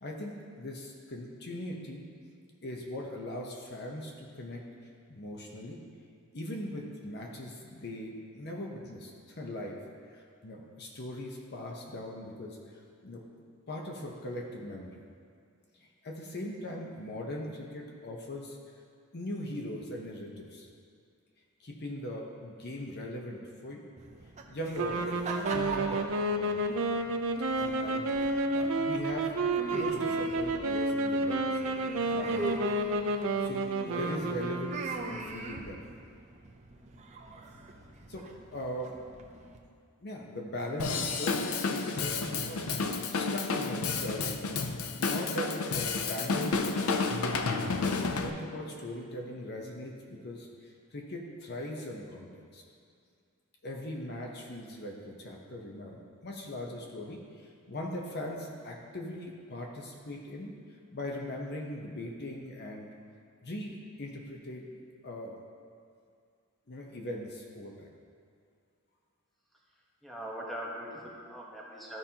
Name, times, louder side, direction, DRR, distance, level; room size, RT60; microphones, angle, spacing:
voice 1, 0.0-2.0 2.6-4.6 5.1-5.8 6.3-9.8 10.1-12.6 13.0-13.2 13.7-14.9 16.0-18.6 19.1-20.7 21.6-23.8 24.5-25.2 25.5-26.6 27.5-31.8 32.1-32.5 33.4-36.0 38.1-38.2 38.5-38.9 40.0-44.4 45.0-46.9 47.9-52.6 53.6-60.5 60.9-62.9 63.4-64.7 65.0-65.4 66.7-67.9, left 1 dB, 50° left, -1 dB, 0.9 m, -40 dB
sound 1, 24.0-39.6, right 2 dB, 35° right, 0.6 m, -42 dB
sound 2, 24.8-35.2, right 2 dB, 75° right, 0.6 m, -30 dB
Drum kit / Drum, 40.8-48.3, left 4 dB, 80° left, 0.5 m, -31 dB
voice 2, 70.0-72.0, equal, ahead, -5 dB, 1.2 m, -41 dB
13.5 x 5.4 x 2.9 m, 2.2 s
head